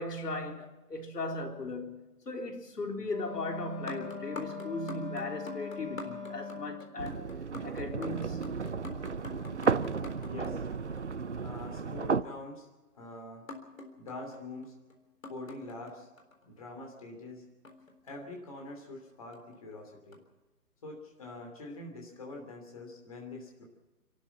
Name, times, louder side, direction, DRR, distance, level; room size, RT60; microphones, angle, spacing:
voice 1, 0.0-7.3 7.6-8.6, left 2 dB, 85° left, 3.8 m, -37 dB
Wind instrument woodwind instrument, 3.0-6.9, left 4 dB, ahead, 6.9 m, -42 dB
sound 1, 3.7-11.4 13.5-16.4 17.6-18.7 19.3-19.6 20.1-20.2, left 2 dB, 55° left, 3.9 m, -47 dB
sound 2, 7.0-12.2, right 5 dB, 50° right, 0.8 m, -33 dB
voice 2, 10.3-10.6 11.4-12.7 12.9-13.5 14.0-14.7 15.3-16.1 16.4-17.4 18.0-20.2 20.8-23.6, left 2 dB, 25° left, 3.0 m, -44 dB
29.0 x 12.0 x 7.3 m
hypercardioid pair, 180°, 46 cm